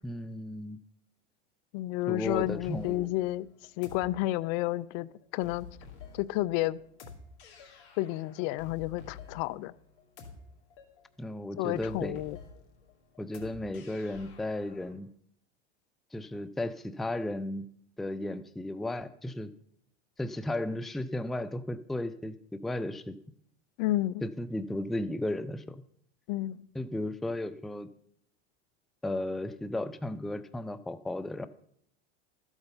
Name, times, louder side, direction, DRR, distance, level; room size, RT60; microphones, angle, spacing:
voice 1, 0.0-0.8 2.1-3.1 11.2-12.2 13.2-15.1 16.1-17.7 18.0-19.5 20.2-23.2 24.2-25.8 26.7-27.9 29.0-31.5, left 1 dB, ahead, 0.4 m, -34 dB
voice 2, 1.7-3.5 3.8-5.7 6.1-6.8 8.0-9.7 11.6-12.4 23.8-24.2 26.3-26.6, left 16 dB, 50° left, 0.5 m, -31 dB
sound 1, 2.2-14.9, left 5 dB, 75° left, 2.8 m, -50 dB
13.5 x 8.1 x 5.5 m
hypercardioid pair, 105°, 34 cm